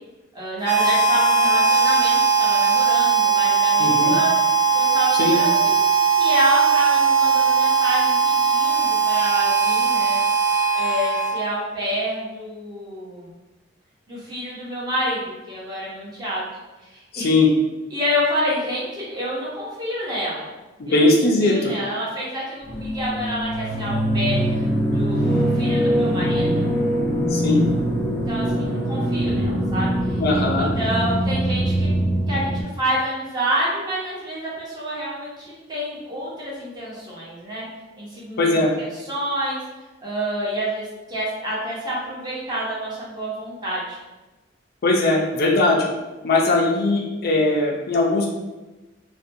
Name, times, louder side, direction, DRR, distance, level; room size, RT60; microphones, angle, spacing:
voice 1, 0.3-4.4 4.7-5.8 6.2-10.2 10.7-13.3 14.1-16.5 16.9-17.3 17.9-20.5 20.9-21.1 21.4-24.7 24.9-26.6 28.3-30.2 30.6-31.9 32.3-37.7 38.0-39.6 40.0-44.0, equal, 20° right, -6 dB, 0.7 m, -28 dB
Harmonica, 0.6-11.6, right 5 dB, 70° right, 0.6 m, -19 dB
voice 2, 3.8-4.1 5.2-5.4 17.1-17.5 20.8-21.7 27.3-27.7 30.2-30.7 38.4-38.7 44.8-45.9 46.2-48.3, left 2 dB, 55° left, -2 dB, 0.4 m, -19 dB
sound 1, 22.7-32.6, right 1 dB, 15° left, 0.7 m, -22 dB
2.5 x 2.2 x 2.6 m, 1.1 s
head